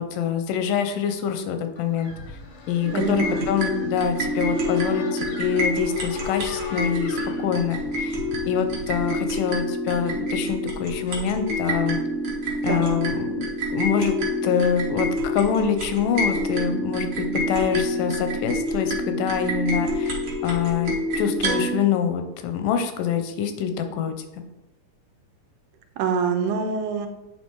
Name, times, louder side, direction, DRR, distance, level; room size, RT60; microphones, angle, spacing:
voice 1, 0.0-2.1 2.7-8.2 8.5-12.0 12.6-14.2 14.4-20.2 20.4-24.4, left 7 dB, 90° left, 7 dB, 2.4 m, -25 dB
sound 1, 1.8-9.1, left 3 dB, 70° left, 1.2 m, -41 dB
sound 2, 2.8-21.8, left 1 dB, 55° right, 1.5 m, -27 dB
voice 2, 2.9-3.5 12.7-13.0 26.0-27.1, right 6 dB, 80° right, 6 dB, 2.1 m, -25 dB
8.9 x 3.5 x 4.6 m, 0.98 s
omnidirectional pair, 3.7 m